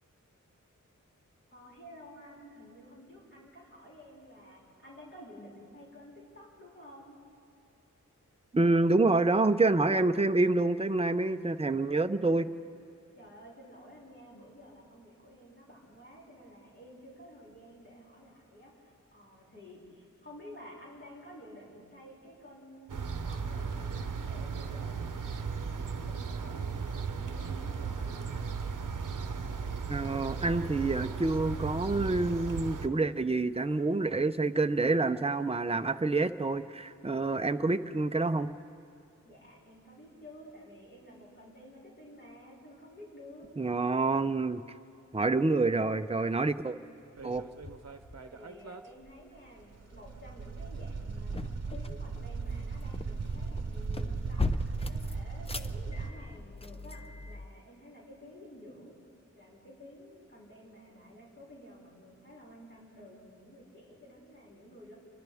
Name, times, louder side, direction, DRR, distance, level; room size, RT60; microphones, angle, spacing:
voice 1, 1.5-7.2 13.1-28.6 39.2-43.5 48.3-51.3 51.7-59.0 59.3-64.9, equal, 40° left, -6 dB, 6.2 m, -52 dB
voice 2, 8.5-12.5 29.9-38.5 43.6-44.6 45.1-46.8 47.2-47.4, right 3 dB, 20° right, 9 dB, 0.7 m, -27 dB
sound 1, 22.9-32.9, right 5 dB, 85° right, 0.9 m, -36 dB
sound 2, 47.2-48.4 51.0-57.5, left 3 dB, 20° left, 0.6 m, -39 dB
sound 3, 47.2-48.8 49.1-49.2 49.6-56.1, right 4 dB, 55° right, 1.0 m, -37 dB
29.5 x 24.5 x 3.6 m, 2.7 s
wide cardioid pair, 80°, 31 cm